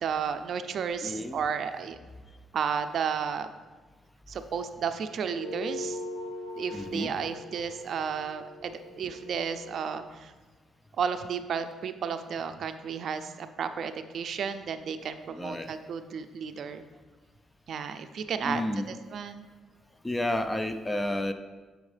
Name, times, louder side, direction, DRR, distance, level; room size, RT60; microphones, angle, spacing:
voice 1, 0.0-2.0 2.5-3.5 4.3-6.0 6.6-10.3 11.0-16.8 17.7-18.6 19.1-19.5, right 7 dB, 60° right, 9 dB, 0.5 m, -33 dB
voice 2, 1.0-1.4 6.7-7.1 15.3-15.7 18.4-18.9 20.0-21.3, left 1 dB, 15° left, 9 dB, 0.5 m, -31 dB
sound 1, 5.2-10.1, left 1 dB, 85° left, 1.1 m, -41 dB
8.0 x 6.2 x 3.3 m, 1.3 s
cardioid pair, 90°, 0 cm